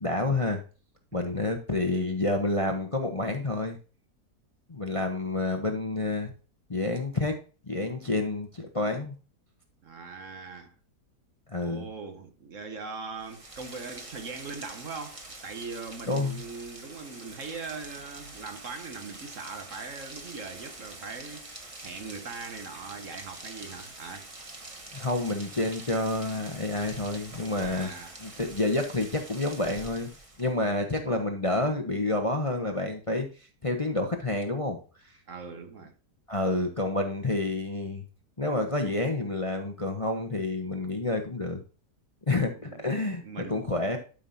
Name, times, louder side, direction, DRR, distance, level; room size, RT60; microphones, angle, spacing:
voice 1, 0.0-0.6 1.1-3.8 4.7-6.3 6.7-7.4 7.7-9.1 11.5-11.8 16.1-16.4 24.9-27.9 28.2-30.1 30.4-34.8 35.0-35.1 36.3-38.0 38.4-41.6 42.3-44.0, left 2 dB, 25° left, 0.9 m, -29 dB
voice 2, 9.8-10.7 11.6-24.3 27.6-28.2 35.3-35.9 42.6-43.0 43.2-43.7, right 4 dB, 55° right, 1.2 m, -41 dB
Rain, 13.2-30.6, right 2 dB, 20° right, 1.2 m, -45 dB
12.0 x 5.5 x 2.7 m
omnidirectional pair, 1.8 m